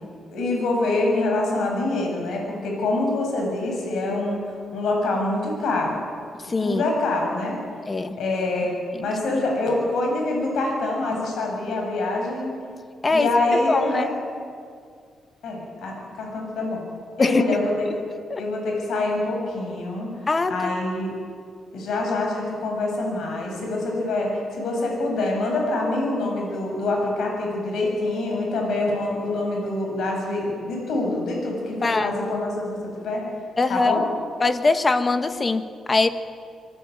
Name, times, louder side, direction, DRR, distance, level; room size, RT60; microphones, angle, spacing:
voice 1, 0.3-4.4 4.7-6.0 6.6-7.6 8.2-8.7 9.0-12.5 13.1-14.1 15.4-16.8 17.2-17.9 18.4-20.2 20.5-21.1 21.7-33.2 33.7-34.1, left 2 dB, 80° left, 0 dB, 7.5 m, -25 dB
voice 2, 6.5-6.8 7.9-8.2 13.0-14.1 17.2-17.4 18.3-18.4 20.3-20.7 31.8-32.1 33.6-34.0 34.4-36.1, left 3 dB, 30° left, 10 dB, 1.6 m, -22 dB
25.5 x 20.5 x 9.4 m, 2.2 s
cardioid pair, 100°, 0 cm